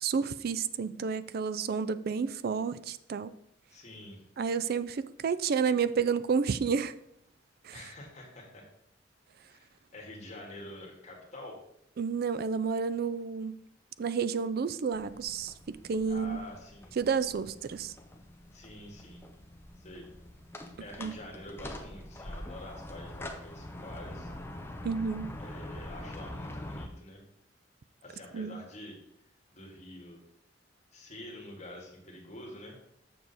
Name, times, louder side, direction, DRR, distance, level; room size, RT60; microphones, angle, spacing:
voice 1, 0.0-3.3 4.4-6.9 7.6-7.7 12.0-13.5 14.0-15.5 15.8-16.5 17.0-17.9 21.0-21.1 24.8-25.3 28.3-28.6, right 6 dB, 55° right, 15 dB, 0.4 m, -30 dB
voice 2, 3.7-4.2 7.7-8.7 9.5-11.6 16.1-16.9 18.5-19.2 19.8-20.1 20.8-24.3 25.4-27.2 28.0-29.0 29.5-30.2 30.9-32.8, left 1 dB, 40° left, -1 dB, 1.9 m, -47 dB
sound 1, 14.9-26.9, left 1 dB, 15° left, 0.7 m, -44 dB
7.0 x 6.3 x 4.1 m, 0.75 s
head